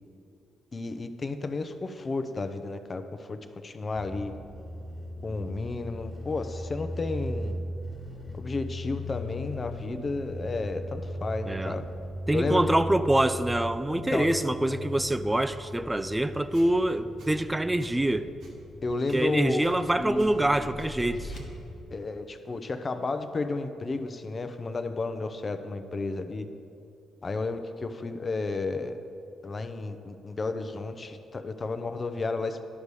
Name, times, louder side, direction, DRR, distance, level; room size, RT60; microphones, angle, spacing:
voice 1, 0.7-4.3 5.2-7.6 8.4-11.8 12.3-12.8 14.1-14.3 18.8-19.7 20.0-20.7 21.9-26.5 27.2-29.0 29.4-32.6, left 3 dB, 40° left, 9 dB, 0.7 m, -32 dB
sound 1, 4.0-21.8, equal, 25° left, 1.8 m, -39 dB
voice 2, 11.5-11.8 12.3-18.3 19.1-21.3, right 1 dB, 15° right, 13 dB, 0.4 m, -25 dB
Squeak, 16.5-16.7 17.2-17.3 17.8-17.9 18.4-18.5 19.1-19.2 19.6-19.7 20.2-20.3 20.8-20.9 21.3-21.5, right 3 dB, 75° right, 1.5 m, -54 dB
sound 2, 18.8-21.4, equal, 60° left, 1.1 m, -45 dB
11.5 x 5.2 x 4.8 m, 2.6 s
supercardioid pair, 55°, 0 cm